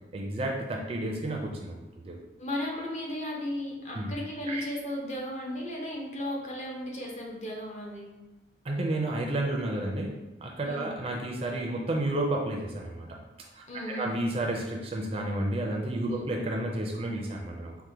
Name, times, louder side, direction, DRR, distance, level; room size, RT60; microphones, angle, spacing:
voice 1, 0.1-2.2 3.9-4.1 4.5-4.7 8.6-13.2 13.5-17.8, right 1 dB, 30° right, 0 dB, 0.4 m, -31 dB
voice 2, 2.4-8.1 10.6-10.9 13.7-14.2 16.0-16.3, left 1 dB, 40° left, -2 dB, 0.7 m, -35 dB
4.7 x 2.1 x 2.8 m, 1.1 s
head